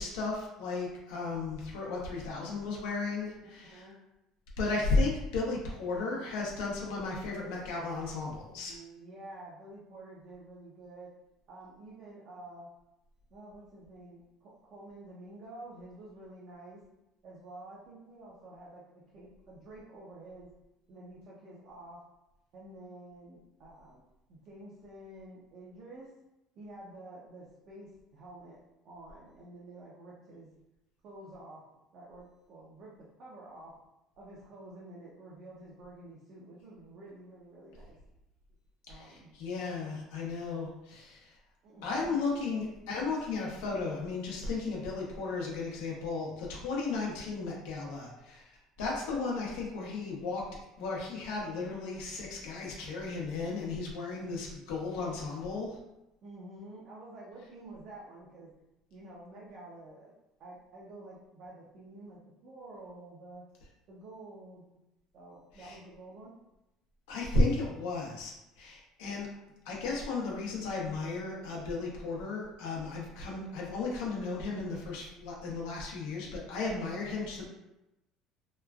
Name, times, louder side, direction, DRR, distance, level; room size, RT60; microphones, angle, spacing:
voice 1, 0.0-3.8 4.6-8.7 38.9-41.3 41.8-48.4 48.8-50.4 50.8-55.8 65.6-65.8 67.1-68.3 68.6-69.3 69.6-77.5, left 3 dB, 90° left, -3 dB, 0.8 m, -34 dB
voice 2, 3.4-4.0 8.1-11.1 11.5-12.7 13.3-16.8 17.2-18.8 19.1-20.5 20.9-22.0 22.5-24.0 24.3-26.1 26.5-28.6 28.8-30.5 31.0-31.6 31.9-33.7 34.2-38.0 38.9-39.3 41.6-42.2 56.2-58.5 58.9-60.1 60.4-63.4 63.9-64.8 65.1-66.3, right 2 dB, 50° right, -6 dB, 0.6 m, -49 dB
3.0 x 2.3 x 2.3 m, 0.92 s
cardioid pair, 125°, 0 cm